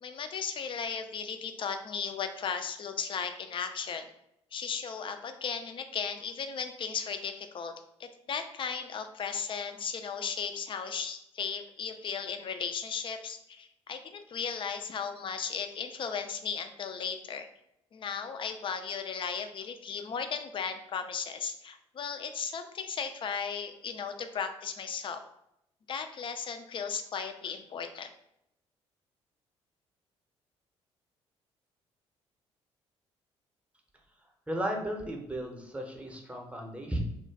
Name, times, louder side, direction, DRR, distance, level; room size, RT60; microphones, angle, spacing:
voice 1, 0.0-4.1 4.5-7.7 8.0-17.5 17.9-25.2 25.9-28.1, left 6 dB, 35° left, 8 dB, 0.4 m, -36 dB
voice 2, 34.5-37.0, right 1 dB, 10° right, 1 dB, 0.7 m, -34 dB
2.4 x 2.2 x 3.3 m, 0.79 s
figure-of-eight pair, 45°, 15 cm